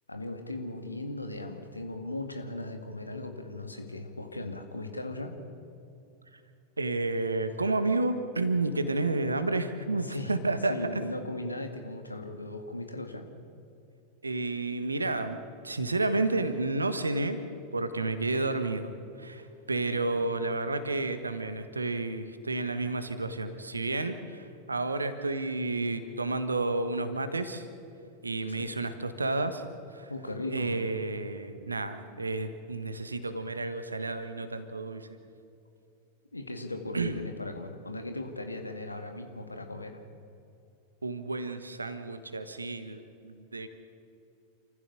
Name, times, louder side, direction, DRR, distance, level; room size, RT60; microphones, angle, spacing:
voice 1, 0.1-5.4 10.0-10.3 10.7-13.3 20.1-20.2 28.5-28.7 30.1-30.8 36.3-40.0, left 2 dB, 85° left, 5 dB, 2.0 m, -38 dB
voice 2, 6.8-11.0 14.2-15.4 15.6-17.4 17.7-18.9 19.2-27.7 28.2-29.6 29.9-30.1 30.5-35.1 36.9-37.2 41.0-43.7, right 2 dB, 80° right, 10 dB, 1.4 m, -31 dB
28.0 x 15.0 x 6.9 m, 2.7 s
figure-of-eight pair, 90°, 0 cm